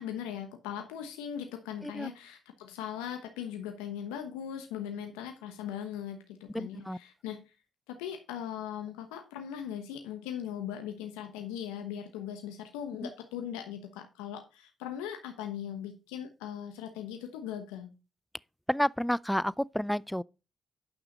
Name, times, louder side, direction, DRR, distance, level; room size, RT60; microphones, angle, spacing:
voice 1, 0.0-7.5 7.9-17.9, left 9 dB, 85° left, 1.1 m, -39 dB
voice 2, 6.5-7.0 18.7-20.2, equal, 5° left, 0.4 m, -30 dB
9.8 x 5.9 x 5.3 m
hypercardioid pair, 45°, 0 cm